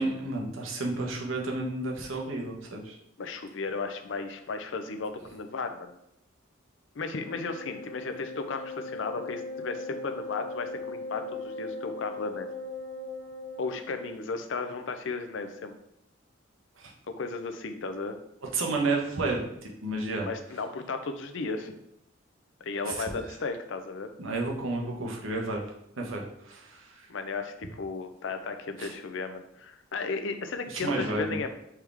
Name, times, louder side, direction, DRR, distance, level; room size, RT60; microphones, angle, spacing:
voice 1, 0.0-3.0 16.8-16.9 18.4-20.3 22.8-23.0 24.2-25.6 26.0-27.1 28.8-28.9 30.7-31.4, right 2 dB, 85° right, 0 dB, 1.0 m, -31 dB
voice 2, 3.2-5.9 6.9-12.5 13.6-15.7 17.1-18.2 20.2-21.7 22.6-24.1 27.1-31.5, left 4 dB, 65° left, 7 dB, 0.5 m, -35 dB
Wind instrument woodwind instrument, 7.1-14.1, left 2 dB, 35° right, 0.8 m, -39 dB
4.5 x 3.5 x 3.4 m, 0.79 s
head